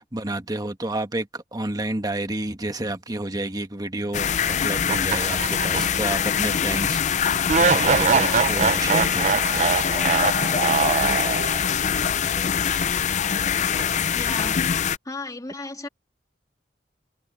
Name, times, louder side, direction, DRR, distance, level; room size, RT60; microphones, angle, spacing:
voice 1, 0.0-9.9, right 1 dB, 20° right, 1.4 m, -30 dB
sound 1, 4.1-15.0, left 8 dB, 40° left, 0.5 m, -23 dB
sound 2, 4.9-6.2 6.5-6.6 7.5-11.8, right 5 dB, 40° right, 0.5 m, -23 dB
voice 2, 14.1-14.7 15.0-15.9, left 2 dB, 20° left, 2.5 m, -34 dB
head